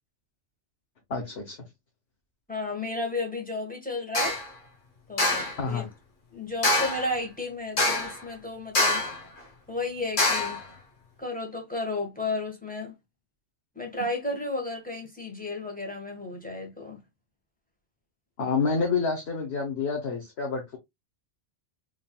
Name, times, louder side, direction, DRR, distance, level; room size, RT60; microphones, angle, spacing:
voice 1, 1.1-1.6 5.6-5.9 18.4-20.8, left 4 dB, 65° left, 1.4 m, -28 dB
voice 2, 2.5-4.4 5.1-5.9 6.3-9.1 9.7-10.6 11.2-12.9 13.7-17.0, left 2 dB, 5° left, 1.5 m, -33 dB
sound 1, 4.1-4.5 5.2-5.6 6.6-7.1 7.8-8.2 8.7-9.2 10.2-10.6, left 2 dB, 45° left, 1.3 m, -24 dB
3.8 x 3.7 x 2.4 m
omnidirectional pair, 1.2 m